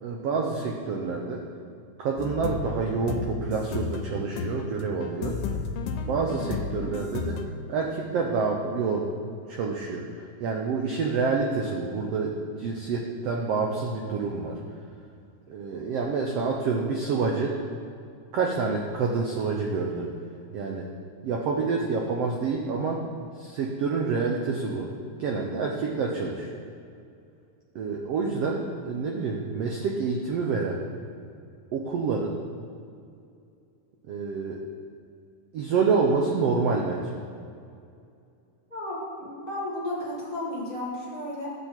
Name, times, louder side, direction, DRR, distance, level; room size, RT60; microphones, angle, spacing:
voice 1, 0.0-1.4 2.0-5.4 6.1-7.4 7.7-9.1 9.5-14.6 15.5-17.6 18.3-20.1 20.5-20.9 21.2-23.1 23.4-24.9 25.2-26.5 27.7-30.8 31.7-32.4 34.1-34.6 35.5-37.2, right 4 dB, 80° right, 0 dB, 1.4 m, -28 dB
sound 1, 2.2-7.5, left 4 dB, 90° left, 2.3 m, -33 dB
voice 2, 38.7-41.5, left 1 dB, 20° left, -7 dB, 1.9 m, -33 dB
13.0 x 7.8 x 4.4 m, 2.5 s
omnidirectional pair, 3.9 m